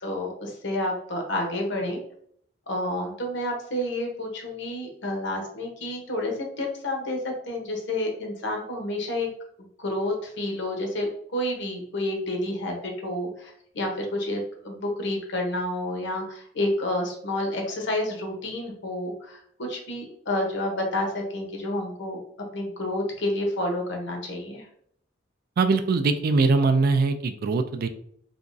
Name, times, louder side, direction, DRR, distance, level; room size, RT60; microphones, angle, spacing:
voice 1, 0.0-2.0 2.7-9.3 9.8-22.2 22.5-24.7, left 1 dB, 65° left, 2 dB, 0.9 m, -29 dB
voice 2, 25.6-27.9, right 3 dB, 50° right, 8 dB, 0.3 m, -22 dB
3.4 x 2.9 x 2.6 m, 0.65 s
head